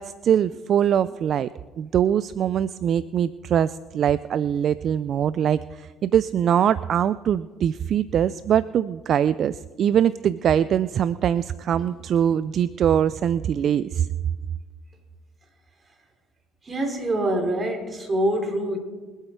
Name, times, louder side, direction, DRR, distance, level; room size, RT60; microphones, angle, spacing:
voice 1, 0.0-1.5 1.8-14.1, right 9 dB, 55° right, 17 dB, 0.4 m, -22 dB
voice 2, 16.6-18.8, right 1 dB, 30° right, 3 dB, 3.6 m, -25 dB
24.0 x 8.1 x 4.5 m, 1.3 s
supercardioid pair, 80°, 0 cm